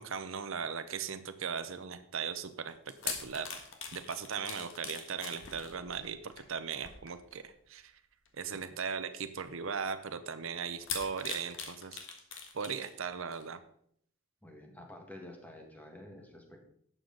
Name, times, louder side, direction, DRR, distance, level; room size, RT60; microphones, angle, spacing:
voice 1, 0.0-2.8 3.0-3.5 3.9-7.9 8.4-12.0 12.5-13.6, right 6 dB, 70° right, 10 dB, 0.7 m, -38 dB
sound 1, 2.7-7.5 8.3-8.5 9.4-9.5 10.8-13.0 13.3-13.4, left 6 dB, 60° left, 1.6 m, -42 dB
voice 2, 14.4-16.7, left 1 dB, 10° left, 2 dB, 1.6 m, -50 dB
11.5 x 7.7 x 3.9 m, 0.66 s
head